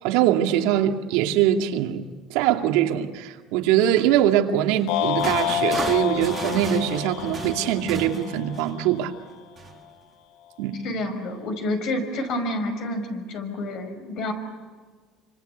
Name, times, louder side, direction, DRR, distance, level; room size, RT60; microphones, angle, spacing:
voice 1, 0.0-9.1 10.6-10.8, right 11 dB, 80° right, 2.4 m, -22 dB
sound 1, 4.8-8.9 9.6-9.8, right 5 dB, 20° right, 1.9 m, -35 dB
sound 2, 4.9-9.2, left 10 dB, 75° left, 1.1 m, -29 dB
voice 2, 10.8-14.3, left 1 dB, 50° left, 5.5 m, -29 dB
28.5 x 25.5 x 8.2 m
cardioid pair, 170°, 0 cm